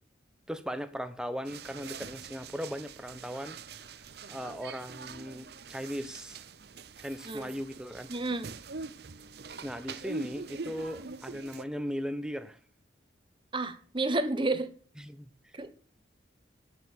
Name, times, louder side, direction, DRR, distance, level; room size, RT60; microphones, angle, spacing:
voice 1, 0.5-3.9 4.3-6.4 7.0-8.1 9.6-12.6 15.0-15.3, equal, 5° right, 0.8 m, -38 dB
sound 1, 1.4-11.6, right 4 dB, 55° right, 0.7 m, -44 dB
voice 2, 8.1-8.5 13.5-14.7 15.5-15.7, right 2 dB, 25° right, 1.1 m, -30 dB
11.0 x 6.9 x 8.4 m
head